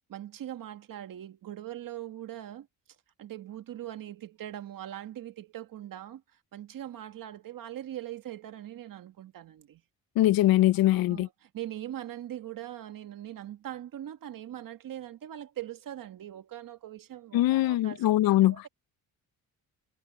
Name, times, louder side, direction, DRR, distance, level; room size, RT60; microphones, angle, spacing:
voice 1, 0.1-2.7 3.2-9.8 10.9-18.0 18.4-18.7, right 12 dB, 65° right, 1.8 m, -41 dB
voice 2, 10.2-11.3 17.3-18.6, left 15 dB, 75° left, 0.5 m, -22 dB
cardioid pair, 135°, 36 cm